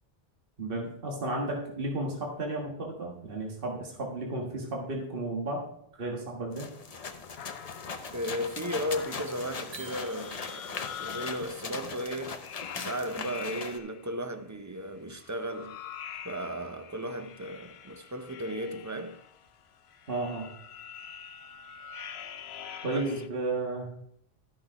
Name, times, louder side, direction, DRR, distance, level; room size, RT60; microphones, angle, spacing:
voice 1, 0.6-5.7 6.0-6.7 20.1-20.5 22.8-23.9, right 2 dB, 60° right, 1.8 m, -33 dB
sound 1, 6.5-13.8, left 5 dB, 40° left, 0.7 m, -40 dB
sound 2, 7.4-11.6 12.4-14.1 15.1-23.3, left 8 dB, 75° left, 0.9 m, -45 dB
voice 2, 8.1-12.4 12.7-15.8 16.2-19.2 22.9-23.0, equal, 25° right, 0.4 m, -35 dB
sound 3, 9.7-10.9, right 6 dB, 75° right, 1.4 m, -49 dB
12.0 x 6.1 x 4.6 m
omnidirectional pair, 1.1 m